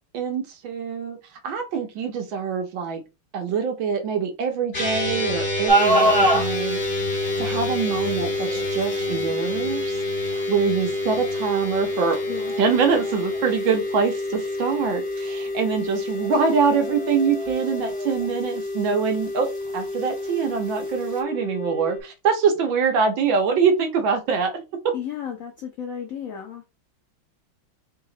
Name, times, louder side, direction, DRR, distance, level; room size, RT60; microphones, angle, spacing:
voice 1, 0.1-1.2 1.4-3.0 3.3-6.8 7.4-12.2 12.6-24.9, right 6 dB, 70° right, 5 dB, 1.6 m, -24 dB
sound 1, 4.7-22.0, left 2 dB, 30° left, 2.1 m, -28 dB
sound 2, 5.7-21.2, right 1 dB, 30° right, 1.7 m, -30 dB
voice 2, 24.9-26.6, left 8 dB, 70° left, 2 dB, 0.8 m, -33 dB
3.8 x 3.0 x 3.8 m, 0.27 s
omnidirectional pair, 2.3 m